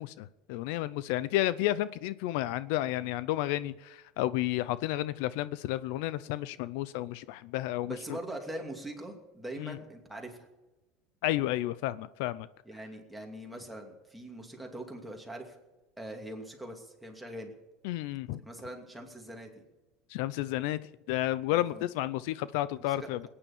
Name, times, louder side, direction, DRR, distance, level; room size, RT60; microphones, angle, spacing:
voice 1, 0.0-8.0 9.6-9.8 11.2-12.5 17.8-18.4 20.1-20.8 21.1-23.3, left 15 dB, 70° left, 0.6 m, -31 dB
voice 2, 7.9-10.5 12.7-15.6 16.0-17.5 18.4-19.5 21.5-21.8 22.9-23.3, right 1 dB, ahead, 2.6 m, -42 dB
20.5 x 9.8 x 7.2 m
cardioid pair, 155°, 0 cm